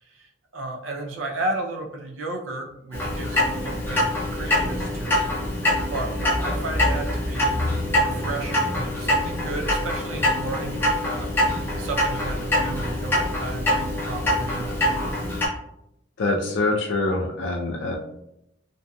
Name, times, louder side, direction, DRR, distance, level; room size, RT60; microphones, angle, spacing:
voice 1, 0.0-5.2 5.5-5.6 5.9-14.7, right 2 dB, 85° right, 2 dB, 0.5 m, -33 dB
Clock, 2.9-15.5, left 1 dB, 10° left, 0.5 m, -24 dB
voice 2, 16.2-18.0, left 2 dB, 70° left, 0 dB, 0.4 m, -24 dB
2.6 x 2.6 x 2.3 m, 0.81 s
head